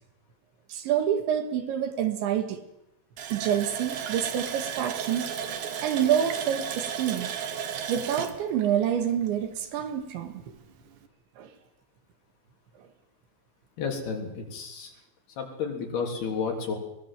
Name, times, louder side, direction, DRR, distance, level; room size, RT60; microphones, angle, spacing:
voice 1, 0.7-2.6 3.3-5.3 5.8-7.3 7.9-10.4 11.4-11.5, right 9 dB, 80° right, 7 dB, 4.2 m, -27 dB
Water tap faucet, 3.2-9.7 10.0-10.1 10.5-10.7, right 8 dB, 60° right, 2.3 m, -34 dB
voice 2, 13.8-14.9 15.4-16.8, left 5 dB, 60° left, 3 dB, 5.3 m, -31 dB
22.5 x 19.5 x 7.6 m, 0.87 s
omnidirectional pair, 5.2 m